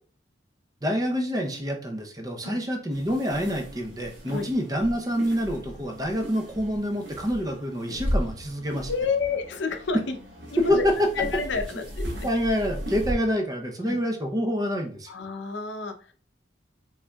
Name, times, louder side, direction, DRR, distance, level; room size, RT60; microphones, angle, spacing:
voice 1, 0.8-8.9 10.6-10.9 12.0-15.1, equal, 20° right, 3 dB, 0.6 m, -27 dB
sound 1, 2.9-13.1, equal, 80° right, 1.7 m, -36 dB
voice 2, 8.9-10.1 10.5-10.8 11.2-12.3 13.8-14.0 15.1-16.1, left 4 dB, 70° left, 6 dB, 0.6 m, -29 dB
5.4 x 3.6 x 2.2 m, 0.42 s
head